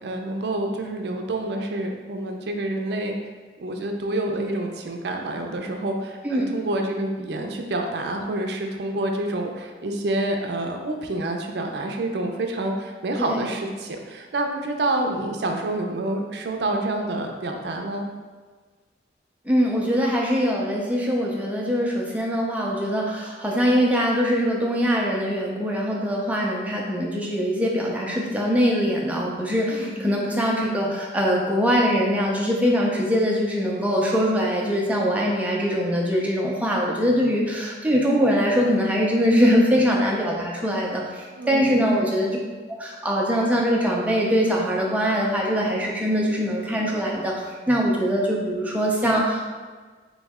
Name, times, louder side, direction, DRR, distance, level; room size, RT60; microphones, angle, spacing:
voice 1, 0.0-3.2 3.6-18.1 29.7-30.0 41.3-41.9, right 2 dB, 65° right, 3 dB, 0.5 m, -28 dB
voice 2, 6.2-6.6 13.2-13.5 19.5-42.4 42.8-49.4, equal, 10° right, -3 dB, 0.5 m, -22 dB
3.6 x 3.1 x 3.5 m, 1.4 s
head